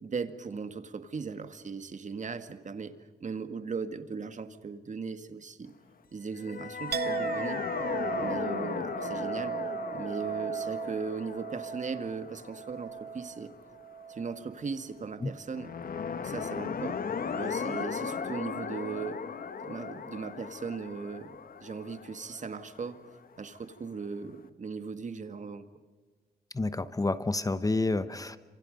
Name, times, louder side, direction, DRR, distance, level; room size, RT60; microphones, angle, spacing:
voice 1, 0.0-2.9 3.2-5.7 6.1-7.7 8.1-9.6 9.9-13.5 14.1-15.7 16.2-17.0 17.3-19.2 19.6-23.0 23.4-25.6, right 5 dB, 45° right, 9 dB, 1.9 m, -38 dB
sound 1, 6.4-13.6 15.5-23.3, left 6 dB, 60° left, 1.5 m, -37 dB
Chink clink, 6.9-14.6 14.9-15.6, right 7 dB, 70° right, 1.1 m, -37 dB
voice 2, 26.5-28.4, left 2 dB, 20° left, 13 dB, 1.0 m, -29 dB
30.0 x 27.0 x 5.4 m, 1.3 s
wide cardioid pair, 110°, 17 cm